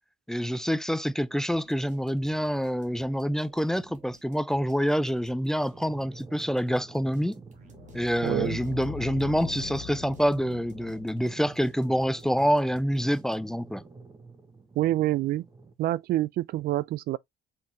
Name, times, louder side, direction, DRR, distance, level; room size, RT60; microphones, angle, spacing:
voice 1, 0.3-7.4 7.9-13.8, equal, 5° left, 0.3 m, -27 dB
sound 1, 1.5-13.7, right 4 dB, 45° right, 1.6 m, -56 dB
sound 2, 5.7-15.7, right 4 dB, 20° right, 1.1 m, -49 dB
sound 3, 7.6-12.6, left 10 dB, 65° left, 0.7 m, -43 dB
voice 2, 8.2-8.6 14.8-15.4 15.8-17.2, right 15 dB, 65° right, 0.4 m, -27 dB
4.3 x 3.9 x 2.7 m
cardioid pair, 110°, 17 cm